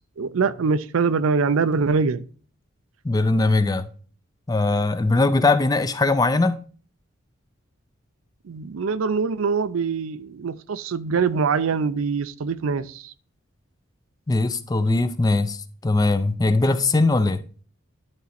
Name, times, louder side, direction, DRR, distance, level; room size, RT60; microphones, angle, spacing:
voice 1, 0.2-2.2 8.4-13.1, right 5 dB, 85° right, 0.5 m, -23 dB
voice 2, 3.0-3.9 4.5-6.6 14.3-17.4, left 2 dB, 20° left, 0.4 m, -20 dB
10.5 x 4.1 x 4.2 m
head